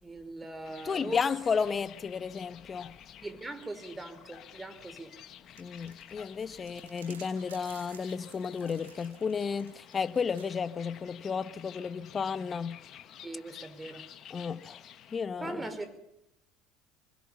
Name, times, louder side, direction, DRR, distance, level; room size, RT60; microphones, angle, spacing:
voice 1, 0.0-1.2 3.2-5.1 13.2-14.0 15.4-16.0, right 2 dB, 15° right, 5.2 m, -40 dB
sound 1, 0.6-15.2, left 10 dB, 50° left, 1.9 m, -52 dB
voice 2, 0.8-3.0 5.6-12.8 14.3-14.8 15.1-15.7, left 6 dB, 30° left, 1.3 m, -33 dB
sound 2, 5.5-10.5, right 7 dB, 80° right, 7.4 m, -54 dB
28.0 x 21.0 x 5.9 m
hypercardioid pair, 70°, 0 cm